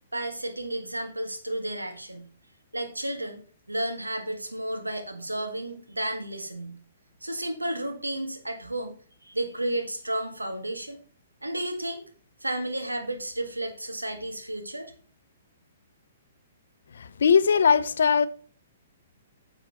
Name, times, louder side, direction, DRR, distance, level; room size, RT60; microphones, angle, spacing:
voice 1, 0.1-2.3 2.7-3.4 3.7-6.8 7.2-11.0 11.4-12.0 12.4-14.9, right 1 dB, 85° right, 1.7 m, -32 dB
voice 2, 17.0-18.3, left 6 dB, 65° left, 0.6 m, -20 dB
9.6 x 6.8 x 3.0 m
figure-of-eight pair, 120°, 0 cm